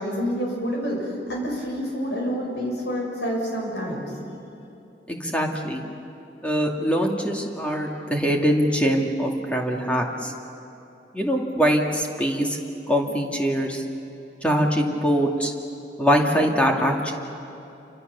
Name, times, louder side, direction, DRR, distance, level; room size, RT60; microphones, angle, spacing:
voice 1, 0.0-4.1, equal, 80° left, -1 dB, 7.0 m, -28 dB
voice 2, 5.1-5.8 6.4-10.3 11.1-12.6 12.9-13.8 14.4-15.5 16.0-17.1, equal, 5° left, 0 dB, 2.3 m, -23 dB
28.5 x 25.5 x 6.9 m, 2.9 s
head